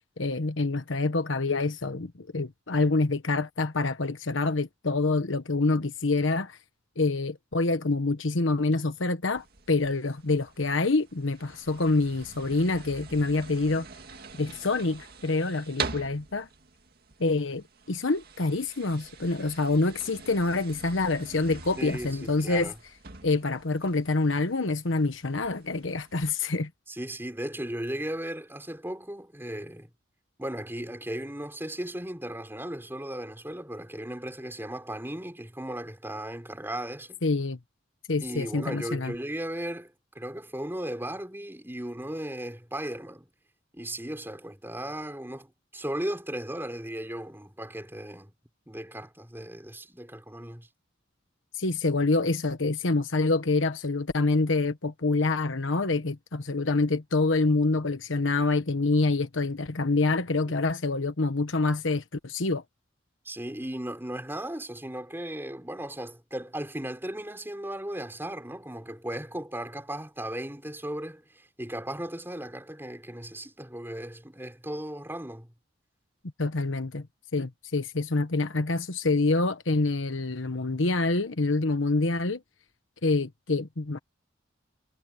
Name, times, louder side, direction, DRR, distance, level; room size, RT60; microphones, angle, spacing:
voice 1, 0.2-6.6 7.0-13.9 14.4-16.5 17.2-22.7 23.2-26.7 37.2-37.6 38.1-39.1 51.5-62.6 76.4-77.1 77.3-82.4 83.0-84.0, left 3 dB, 75° left, 1.2 m, -26 dB
sound 1, 9.3-26.3, right 5 dB, 50° right, 2.2 m, -44 dB
voice 2, 21.8-22.8 26.9-29.9 30.4-37.2 38.2-43.3 43.7-48.3 48.7-50.7 60.4-60.6 63.2-75.5, right 1 dB, 10° right, 4.6 m, -36 dB
head